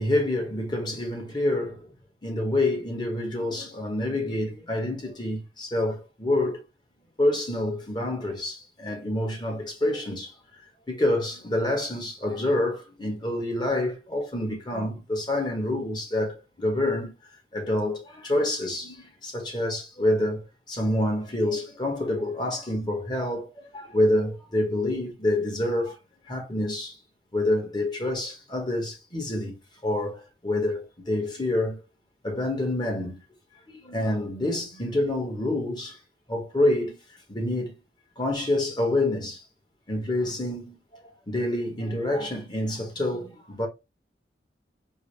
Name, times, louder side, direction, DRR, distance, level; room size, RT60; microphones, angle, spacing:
voice 1, 0.0-1.9 2.2-6.6 7.2-10.3 10.9-17.1 17.5-26.0 26.3-27.0 27.3-29.6 29.8-31.8 32.2-33.2 33.7-36.0 36.3-37.0 37.3-37.7 38.2-39.4 39.9-43.7, left 1 dB, 25° left, 1.2 m, -27 dB
4.6 x 2.1 x 3.3 m
head